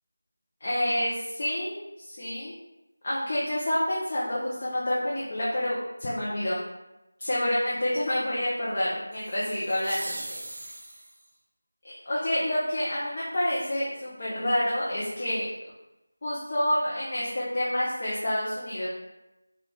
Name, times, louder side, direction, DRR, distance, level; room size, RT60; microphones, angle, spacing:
voice 1, 0.6-2.5 3.0-6.6 7.2-10.1 11.8-15.5 16.2-18.9, left 1 dB, 40° left, -8 dB, 0.6 m, -28 dB
sound 1, 9.1-11.3, right 1 dB, 50° right, 0.5 m, -40 dB
3.5 x 2.4 x 3.2 m, 0.98 s
figure-of-eight pair, 170°, 0 cm